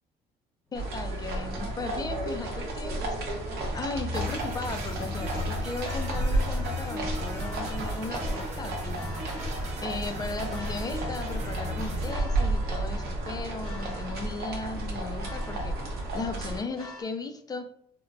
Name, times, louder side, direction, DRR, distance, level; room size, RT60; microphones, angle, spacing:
voice 1, 0.7-3.4 3.7-9.0 9.8-17.6, left 3 dB, 25° left, 6 dB, 0.3 m, -37 dB
sound 1, 0.7-17.0, left 1 dB, 5° left, 1.0 m, -49 dB
sound 2, 0.7-16.6, right 1 dB, 70° right, 0.8 m, -32 dB
sound 3, 4.1-12.2, right 2 dB, 40° right, 0.7 m, -39 dB
3.1 x 2.1 x 2.4 m, 0.72 s
cardioid pair, 110°, 17 cm